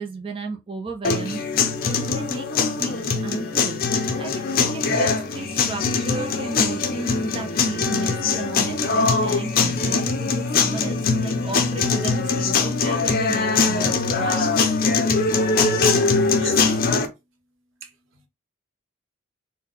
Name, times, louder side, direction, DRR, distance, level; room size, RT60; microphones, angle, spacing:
voice 1, 0.0-1.5 1.8-3.8 4.2-14.5, right 3 dB, 25° right, 0.5 m, -33 dB
sound 1, 1.0-17.1, left 4 dB, 45° left, 0.5 m, -22 dB
voice 2, 16.0-16.8 17.8-18.3, right 2 dB, 70° right, 0.9 m, -37 dB
3.6 x 2.1 x 3.8 m
head